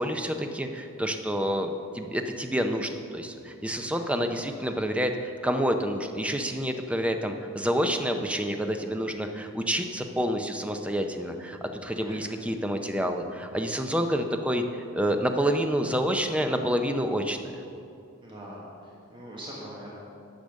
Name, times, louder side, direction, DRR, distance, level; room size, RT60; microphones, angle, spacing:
voice 1, 0.0-17.5, equal, 5° right, 5 dB, 0.5 m, -28 dB
voice 2, 11.8-12.2 18.2-19.9, equal, 20° right, -5 dB, 1.3 m, -43 dB
10.5 x 6.6 x 6.4 m, 2.6 s
head